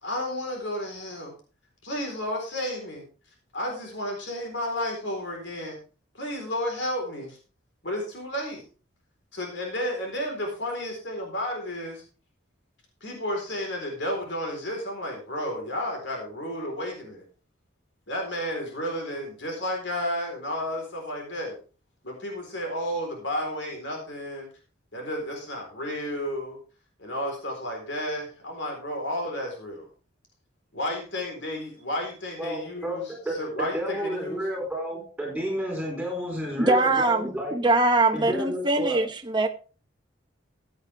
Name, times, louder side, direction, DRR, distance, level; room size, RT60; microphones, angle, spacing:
voice 1, 0.0-1.3 1.8-3.0 3.5-5.8 6.1-7.4 7.8-8.6 9.3-12.0 13.0-17.2 18.1-21.6 22.0-24.5 24.9-26.6 27.0-29.8 30.7-34.5, left 1 dB, 65° left, 4.1 m, -32 dB
voice 2, 32.4-33.0 33.2-37.5 38.1-39.0, equal, ahead, 4.2 m, -31 dB
voice 3, 36.6-39.5, right 2 dB, 20° right, 0.9 m, -22 dB
16.0 x 8.6 x 3.5 m
head